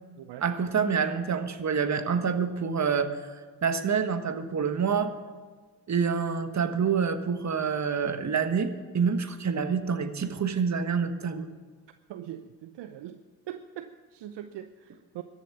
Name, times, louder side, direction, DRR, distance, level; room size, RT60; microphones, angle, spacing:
voice 1, 0.4-3.2 3.6-5.1 5.9-11.5, right 6 dB, 35° right, 9 dB, 1.4 m, -27 dB
voice 2, 12.1-13.2 13.5-15.2, right 11 dB, 60° right, 10 dB, 0.8 m, -41 dB
13.5 x 7.3 x 9.4 m, 1.5 s
hypercardioid pair, 60°, 48 cm